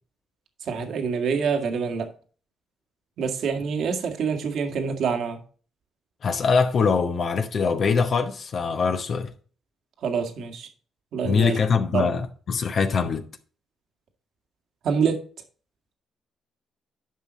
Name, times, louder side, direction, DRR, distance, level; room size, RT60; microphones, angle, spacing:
voice 1, 0.7-2.1 3.2-5.4 10.0-10.7 11.1-11.6 11.9-12.1 14.8-15.2, right 6 dB, 70° right, 1.8 m, -26 dB
voice 2, 6.2-9.3 11.2-13.3, left 5 dB, 50° left, 1.0 m, -23 dB
10.5 x 5.7 x 4.0 m
cardioid pair, 90°, 0 cm